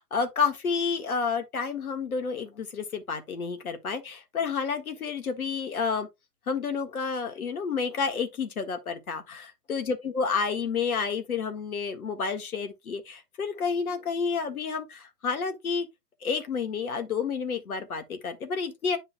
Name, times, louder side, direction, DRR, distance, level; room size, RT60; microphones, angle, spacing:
voice 1, 0.0-6.1 6.5-15.9 16.2-19.0, left 5 dB, 65° left, 1.7 m, -30 dB
9.8 x 5.4 x 2.2 m
figure-of-eight pair, 120°, 47 cm